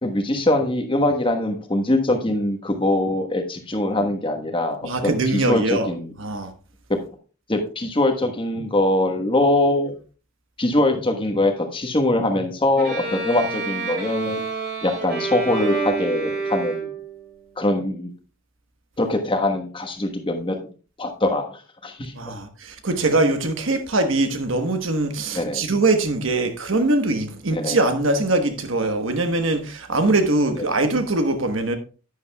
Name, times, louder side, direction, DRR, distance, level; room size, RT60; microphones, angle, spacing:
voice 1, 0.0-6.1 6.9-7.0 7.5-9.9 10.6-14.4 14.8-16.9 17.6-18.1 19.0-20.6 21.0-22.1 25.3-25.6 27.5-27.8, left 1 dB, 25° left, 1.3 m, -22 dB
voice 2, 4.8-5.9 6.2-6.5 22.1-31.8, right 2 dB, 65° right, 1.2 m, -22 dB
Bowed string instrument, 12.8-17.2, right 4 dB, 50° right, 4.5 m, -28 dB
11.0 x 9.6 x 2.3 m
head